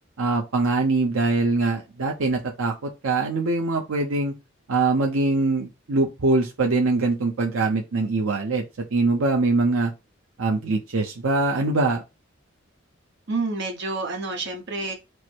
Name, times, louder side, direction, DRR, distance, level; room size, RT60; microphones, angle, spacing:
voice 1, 0.2-4.3 4.7-8.6 8.9-9.9 10.4-12.0, right 3 dB, 80° right, 0.7 m, -23 dB
voice 2, 13.3-14.9, right 3 dB, 55° right, 0.9 m, -28 dB
4.6 x 2.1 x 4.4 m
head